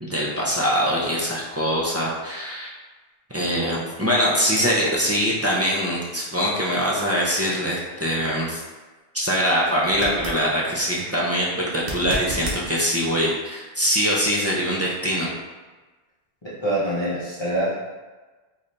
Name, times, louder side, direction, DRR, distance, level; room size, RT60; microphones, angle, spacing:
voice 1, 0.0-2.7 3.3-8.6 9.1-15.3, equal, 20° right, -6 dB, 0.4 m, -23 dB
sound 1, 9.9-10.4 11.8-12.6 15.6-15.7, right 1 dB, 70° right, 1.0 m, -31 dB
voice 2, 16.4-17.7, right 1 dB, 30° left, -10 dB, 0.7 m, -25 dB
4.1 x 3.2 x 2.6 m, 1.3 s
omnidirectional pair, 1.0 m